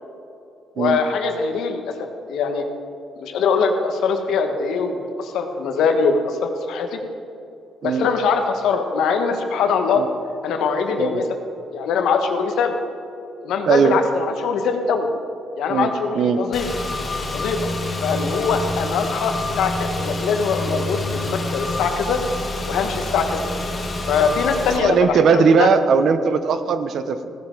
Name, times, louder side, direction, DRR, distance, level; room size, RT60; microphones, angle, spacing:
voice 1, 0.8-1.9 2.3-2.6 3.2-7.0 7.8-10.1 10.4-11.3 11.7-12.7 13.4-15.1 15.6-16.7 17.3-17.6 18.0-22.2 22.7-23.5 24.1-25.7, left 5 dB, 80° left, 5 dB, 1.2 m, -22 dB
voice 2, 13.7-14.0 15.7-16.4 24.7-27.3, right 6 dB, 65° right, 10 dB, 0.8 m, -19 dB
Car / Engine, 16.5-24.8, left 2 dB, 35° left, 2.0 m, -27 dB
16.0 x 10.0 x 3.9 m, 2.7 s
cardioid pair, 90°, 0 cm